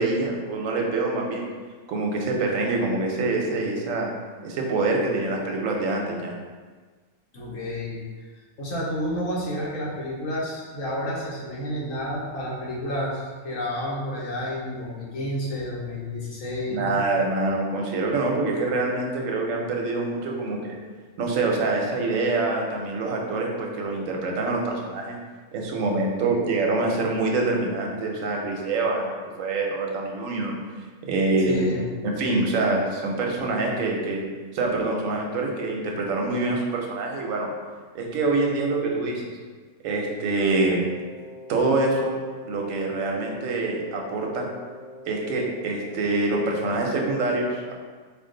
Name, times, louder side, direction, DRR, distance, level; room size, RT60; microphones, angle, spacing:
voice 1, 0.0-1.4 1.9-4.1 4.4-6.3 16.7-20.8 21.2-25.2 25.5-30.6 31.0-31.7 32.2-34.2 34.5-37.5 37.9-39.2 39.8-40.8 41.5-42.2 42.5-44.5 45.1-47.7, right 3 dB, 90° right, 0 dB, 1.1 m, -25 dB
voice 2, 7.3-8.0 8.6-16.9 31.5-31.9, left 1 dB, 85° left, -5 dB, 1.4 m, -30 dB
Wind instrument woodwind instrument, 40.5-46.3, left 1 dB, 30° left, 0.6 m, -43 dB
4.4 x 2.4 x 3.7 m, 1.4 s
omnidirectional pair, 1.3 m